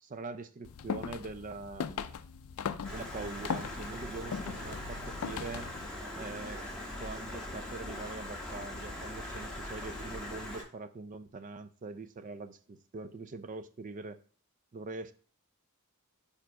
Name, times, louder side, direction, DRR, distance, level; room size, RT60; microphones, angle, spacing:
voice 1, 0.0-2.1 2.9-5.7 6.1-6.6 7.0-14.2 14.7-15.1, right 3 dB, 35° right, 0.4 m, -43 dB
sound 1, 0.6-5.9, left 6 dB, 70° left, 0.4 m, -39 dB
Stream, 2.8-10.6, left 1 dB, 5° left, 1.5 m, -41 dB
5.0 x 4.9 x 4.6 m
head